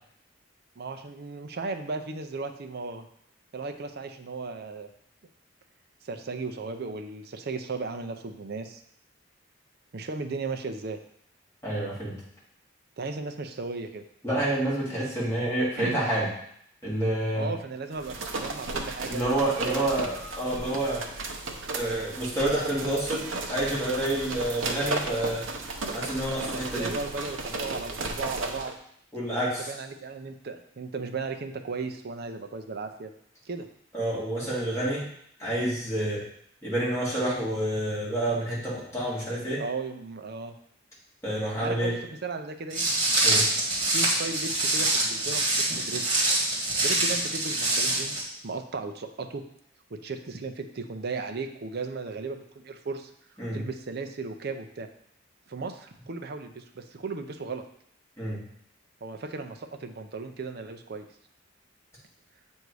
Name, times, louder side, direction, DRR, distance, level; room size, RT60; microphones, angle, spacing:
voice 1, 0.8-3.0 3.5-4.9 6.0-8.8 9.9-11.0 13.0-14.0 15.8-16.0 17.3-19.8 26.5-28.7 29.4-33.1 33.5-33.7 39.6-40.5 41.6-41.9 42.2-42.8 43.9-46.0 46.8-49.4 49.9-53.1 53.5-54.9 55.5-57.6 59.0-61.1, right 4 dB, 55° right, 6 dB, 0.5 m, -36 dB
voice 2, 11.6-12.1 14.2-16.3 16.8-17.5 19.0-21.0 21.7-25.5 25.9-26.9 29.1-29.7 33.9-35.1 35.4-36.2 36.6-39.6 41.2-42.0 43.2-43.4 53.4-53.6 58.2-58.4, right 1 dB, 15° left, -8 dB, 2.3 m, -28 dB
sound 1, 17.9-28.7, right 2 dB, 85° right, 0.7 m, -34 dB
Walk footsteps, 42.7-48.2, right 2 dB, 25° right, 1.7 m, -25 dB
7.9 x 2.7 x 4.7 m, 0.69 s
head